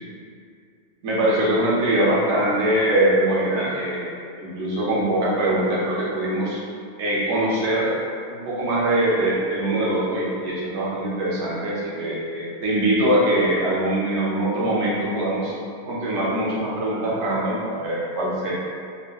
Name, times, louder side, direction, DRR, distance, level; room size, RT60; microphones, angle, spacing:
voice 1, 1.0-6.6 7.0-7.9 8.3-15.5 15.8-18.5, right 1 dB, 85° right, -6 dB, 0.9 m, -22 dB
2.7 x 2.5 x 2.2 m, 2.3 s
omnidirectional pair, 1.2 m